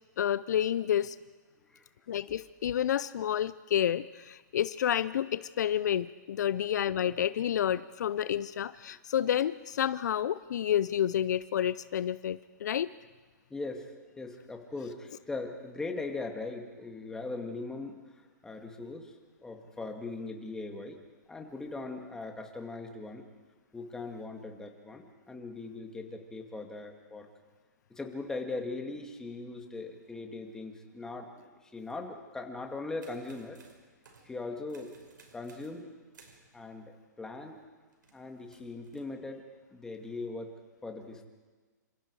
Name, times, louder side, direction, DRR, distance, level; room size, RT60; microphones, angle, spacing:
voice 1, 0.2-1.2 2.1-12.9, left 10 dB, 65° left, 16 dB, 0.6 m, -29 dB
voice 2, 13.5-13.9 14.2-19.1 19.4-21.0 21.3-23.2 23.7-27.3 27.9-33.6 34.2-34.9 35.3-35.9 36.5-37.6 38.1-39.4 39.7-40.5 40.8-41.2, left 3 dB, 5° left, 3 dB, 2.2 m, -40 dB
sound 1, 33.0-34.4 34.7-35.8 36.1-36.5 37.9-39.1, right 4 dB, 90° right, 5.6 m, -59 dB
28.0 x 26.5 x 4.8 m, 1.3 s
hypercardioid pair, 150°, 10 cm